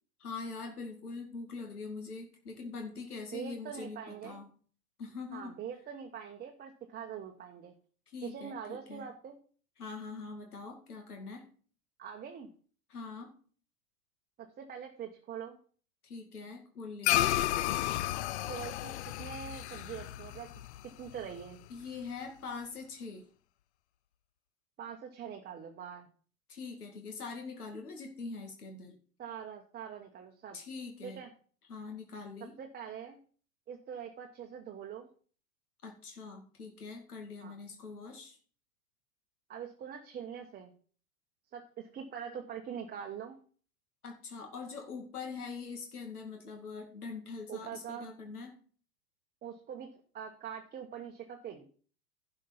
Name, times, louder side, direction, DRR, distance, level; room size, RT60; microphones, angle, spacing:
voice 1, 0.2-4.5 5.0-5.6 8.1-9.1 9.8-11.5 12.9-13.3 16.0-17.3 21.7-23.3 26.5-29.0 30.5-31.2 31.7-32.6 35.8-38.4 44.0-48.5, left 4 dB, 75° left, 3 dB, 2.4 m, -43 dB
voice 2, 3.3-4.4 5.3-7.7 8.2-9.4 12.0-12.5 14.4-15.6 18.5-20.5 20.8-21.6 24.8-26.1 29.2-30.6 31.0-31.3 32.4-33.2 33.7-35.1 37.4-37.5 39.5-40.7 41.5-43.4 47.5-48.1 49.4-51.7, right 8 dB, 20° right, 3 dB, 1.2 m, -43 dB
sound 1, 17.0-21.7, left 14 dB, 50° left, 0.5 m, -32 dB
11.5 x 5.5 x 5.7 m, 0.42 s
figure-of-eight pair, 95°, 46 cm